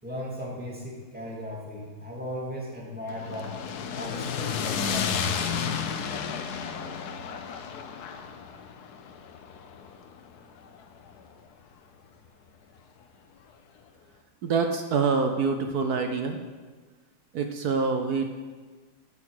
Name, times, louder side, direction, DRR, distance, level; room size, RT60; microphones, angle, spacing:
voice 1, 0.0-3.6 3.9-5.6, left 1 dB, 5° right, -4 dB, 2.4 m, -37 dB
sound 1, 3.1-11.3, left 7 dB, 65° left, 1.0 m, -32 dB
voice 2, 14.4-16.4 17.3-18.3, right 4 dB, 70° right, 6 dB, 0.9 m, -26 dB
9.8 x 7.2 x 6.5 m, 1.4 s
omnidirectional pair, 2.3 m